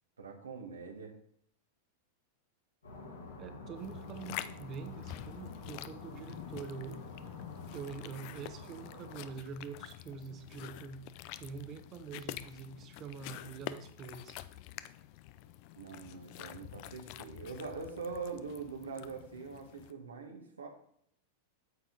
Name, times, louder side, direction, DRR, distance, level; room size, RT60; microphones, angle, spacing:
voice 1, 0.2-1.1 15.8-20.7, right 4 dB, 80° right, 2 dB, 1.7 m, -43 dB
sound 1, 2.8-9.3, left 2 dB, 85° left, 3.2 m, -49 dB
voice 2, 3.4-7.0 7.7-11.0 11.4-14.4, right 5 dB, 35° right, 8 dB, 1.1 m, -45 dB
sound 2, 3.8-19.9, left 14 dB, 50° left, 0.4 m, -47 dB
8.7 x 7.2 x 3.9 m, 0.66 s
figure-of-eight pair, 95°, 0 cm